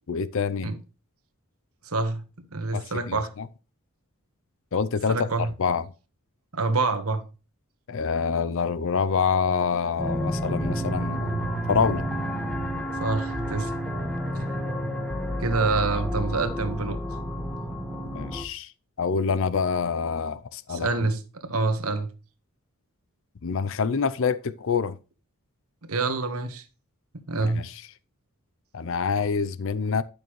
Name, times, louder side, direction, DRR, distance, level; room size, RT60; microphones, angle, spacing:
voice 1, 0.1-0.7 2.7-3.5 4.7-5.3 5.6-5.8 7.9-11.4 11.7-12.0 18.0-18.7 19.0-20.9 23.4-25.0 27.4-27.7 28.7-30.0, left 5 dB, 60° left, 0.5 m, -26 dB
voice 2, 1.8-2.2 2.5-3.3 5.1-5.5 6.5-7.2 13.0-13.7 15.4-17.0 20.7-22.1 25.8-26.6 27.3-27.6, right 3 dB, 75° right, 1.4 m, -26 dB
sound 1, 10.0-18.4, equal, 5° left, 1.4 m, -30 dB
10.5 x 6.7 x 3.1 m
head